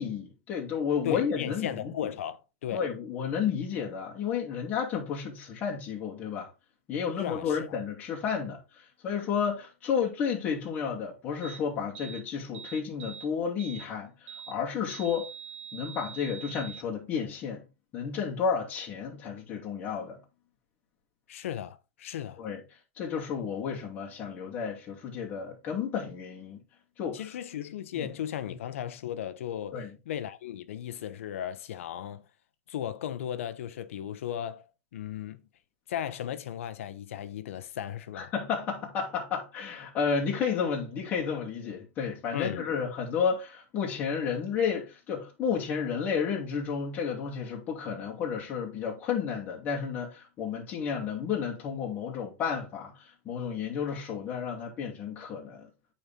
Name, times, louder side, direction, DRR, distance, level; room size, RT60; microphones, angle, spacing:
voice 1, 0.0-1.9 2.7-6.5 6.9-15.3 15.7-17.7 17.9-20.2 22.4-22.6 23.0-26.6 27.0-27.2 27.9-28.1 29.7-29.9 38.1-55.7, left 6 dB, 25° left, 2.7 m, -32 dB
voice 2, 1.0-2.8 7.2-7.8 21.3-22.4 27.1-32.2 32.7-34.6 34.9-35.4 35.9-38.3 42.3-42.7, left 10 dB, 75° left, 0.9 m, -36 dB
sound 1, 11.4-11.6 12.0-12.2 12.5-13.3 13.6-13.9 14.3-14.6 14.9-16.8, right 8 dB, 60° right, 1.0 m, -44 dB
9.2 x 4.4 x 3.7 m
supercardioid pair, 155°, 7 cm